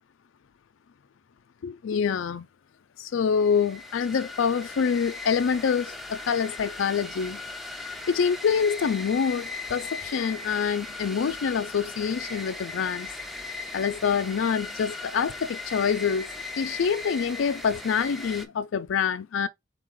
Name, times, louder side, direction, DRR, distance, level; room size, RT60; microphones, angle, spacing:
voice 1, 1.6-2.5 3.0-7.4 8.1-13.1 13.7-16.3 16.6-19.5, left 6 dB, 70° left, 0.4 m, -26 dB
sound 1, 3.3-18.5, left 3 dB, ahead, 0.6 m, -38 dB
4.5 x 3.1 x 3.5 m
head